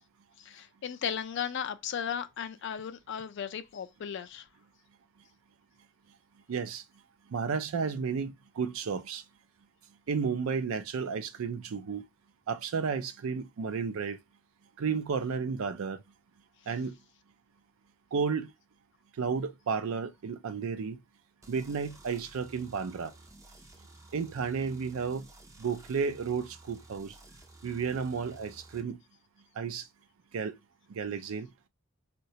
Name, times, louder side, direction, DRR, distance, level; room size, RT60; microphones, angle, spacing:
voice 1, 0.4-4.5, left 8 dB, 55° left, 0.4 m, -36 dB
voice 2, 6.5-6.8 7.3-9.2 10.1-12.0 12.5-14.2 14.8-16.0 16.7-16.9 18.1-18.5 19.2-21.0 21.5-23.1 24.1-25.3 25.6-27.1 27.6-29.0 29.6-29.9 30.3-30.6 30.9-31.5, right 5 dB, 75° right, 0.4 m, -32 dB
sound 1, 21.4-28.8, right 2 dB, 15° right, 0.4 m, -54 dB
3.8 x 2.2 x 2.7 m
head